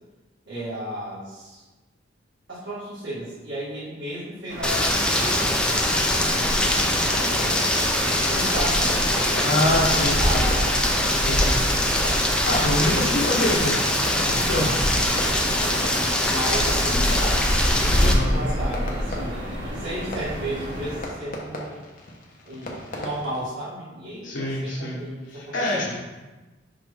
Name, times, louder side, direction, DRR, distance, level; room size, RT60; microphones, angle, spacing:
voice 1, 0.5-1.6 2.5-7.4 8.0-9.0 9.6-10.7 12.9-13.2 14.5-15.8 16.2-19.4 19.7-21.8 22.4-26.0, right 1 dB, 90° right, -10 dB, 1.8 m, -34 dB
sound 1, 4.5-21.0, equal, 70° right, 1.9 m, -28 dB
Rain, 4.6-18.1, left 1 dB, 5° left, 0.6 m, -23 dB
Fireworks, 6.9-23.4, left 1 dB, 50° left, 1.1 m, -38 dB
voice 2, 9.4-10.5 11.1-11.6 12.5-13.8 14.2-14.7 18.0-18.4 24.2-25.0 25.3-26.0, left 1 dB, 80° left, -6 dB, 1.2 m, -25 dB
5.9 x 5.3 x 3.5 m, 1.2 s
head